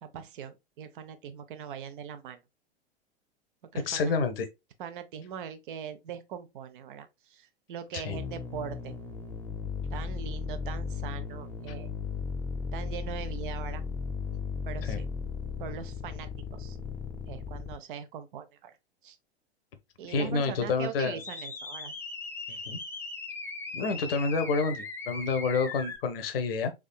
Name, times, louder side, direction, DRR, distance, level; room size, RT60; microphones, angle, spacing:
voice 1, 0.0-2.4 3.7-4.1 4.8-9.0 9.9-11.9 12.7-13.9 14.3-14.4 14.7-15.1 15.6-16.8 17.3-18.8 19.0-19.2 20.0-21.9, right 8 dB, 55° right, 0.6 m, -41 dB
voice 2, 3.9-4.5 7.9-8.2 14.9-15.0 20.1-21.2 22.5-22.8 23.7-26.7, left 4 dB, 65° left, 0.8 m, -29 dB
sound 1, 8.1-17.7 21.2-26.0, left 5 dB, 5° left, 0.5 m, -37 dB
3.6 x 3.4 x 2.2 m
figure-of-eight pair, 95°, 31 cm